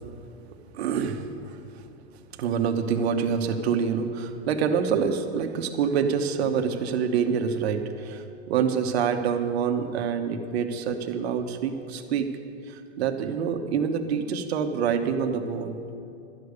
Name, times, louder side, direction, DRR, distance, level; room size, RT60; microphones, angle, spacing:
voice 1, 0.7-1.6 2.4-12.3 12.7-15.7, right 6 dB, 80° right, 6 dB, 1.2 m, -26 dB
12.5 x 6.7 x 9.6 m, 2.6 s
supercardioid pair, 135°, 32 cm